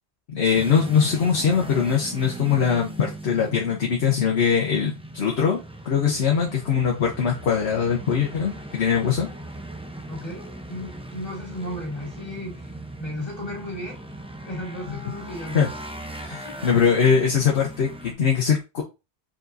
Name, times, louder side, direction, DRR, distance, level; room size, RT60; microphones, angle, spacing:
voice 1, 0.3-5.6 5.8-9.3 15.5-15.7 16.2-18.8, left 7 dB, 70° left, 0 dB, 1.1 m, -22 dB
sound 1, 0.5-18.1, right 1 dB, 5° right, 0.5 m, -39 dB
voice 2, 10.1-14.0 14.4-15.7 16.3-16.8, left 1 dB, 35° left, -4 dB, 2.4 m, -35 dB
4.7 x 4.3 x 2.6 m, 0.27 s
omnidirectional pair, 1.1 m